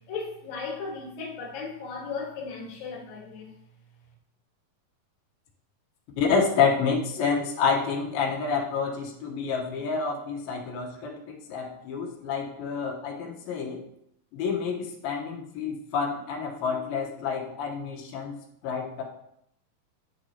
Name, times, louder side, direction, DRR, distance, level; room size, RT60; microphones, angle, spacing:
voice 1, 0.1-3.5, left 4 dB, 60° left, -1 dB, 2.7 m, -36 dB
voice 2, 6.2-13.8 14.3-18.4 18.6-19.0, left 5 dB, 90° left, -1 dB, 3.0 m, -28 dB
9.6 x 6.0 x 2.8 m, 0.74 s
omnidirectional pair, 4.2 m